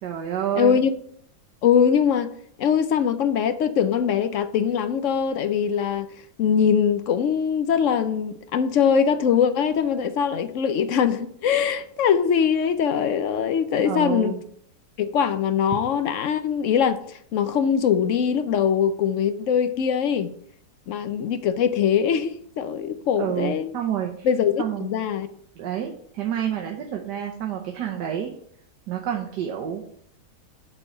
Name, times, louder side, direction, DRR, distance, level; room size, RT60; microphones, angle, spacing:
voice 1, 0.0-0.8 13.8-14.4 23.2-24.3 24.6-25.0 25.6-28.3 28.9-29.8, right 9 dB, 90° right, 2 dB, 1.5 m, -29 dB
voice 2, 0.5-0.9 1.6-2.3 2.6-6.1 6.4-14.3 15.0-20.3 20.9-23.7 24.2-25.3, left 7 dB, 65° left, 11 dB, 0.8 m, -22 dB
7.5 x 4.4 x 6.4 m, 0.64 s
omnidirectional pair, 1.7 m